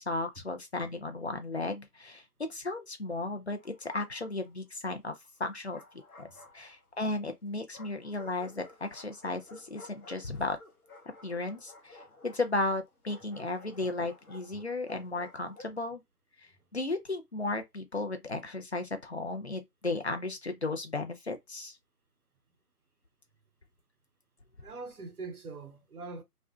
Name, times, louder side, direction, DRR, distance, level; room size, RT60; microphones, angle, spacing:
voice 1, 0.0-5.1 5.4-5.8 6.2-6.3 6.5-10.6 11.2-16.0 16.4-21.8, left 2 dB, 45° left, 0.4 m, -35 dB
Bark, 3.6-4.5 5.4-7.0 7.7-15.8, left 2 dB, 65° left, 0.8 m, -54 dB
voice 2, 24.6-26.2, right 3 dB, 65° right, 0.8 m, -43 dB
2.5 x 2.1 x 2.3 m
figure-of-eight pair, 155°, 47 cm